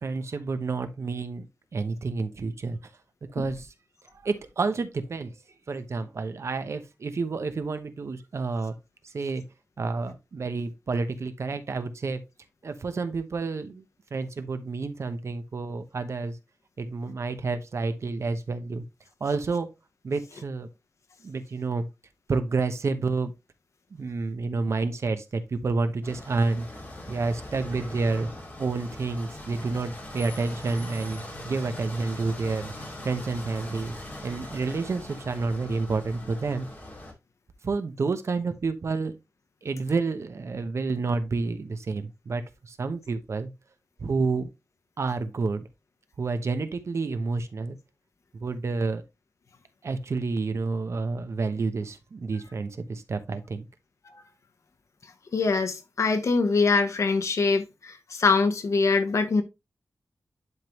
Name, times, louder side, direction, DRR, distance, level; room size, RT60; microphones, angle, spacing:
voice 1, 0.0-1.5 1.7-2.8 3.3-3.7 4.2-5.3 5.7-8.7 9.0-9.4 9.8-12.2 12.6-13.8 14.1-16.4 16.8-18.8 19.2-19.7 20.0-20.7 21.2-21.9 22.3-23.3 23.9-26.7 27.1-28.3 28.6-33.9 34.2-36.7 37.6-39.2 39.6-43.5 44.0-44.5 45.0-45.7 46.2-47.8 48.3-49.0 49.8-53.7, right 3 dB, 60° right, 0.9 m, -29 dB
sound 1, 26.0-37.1, left 1 dB, 35° left, 2.2 m, -41 dB
voice 2, 55.3-59.4, left 4 dB, 70° left, 1.0 m, -23 dB
11.0 x 3.7 x 3.0 m
wide cardioid pair, 130°, 5 cm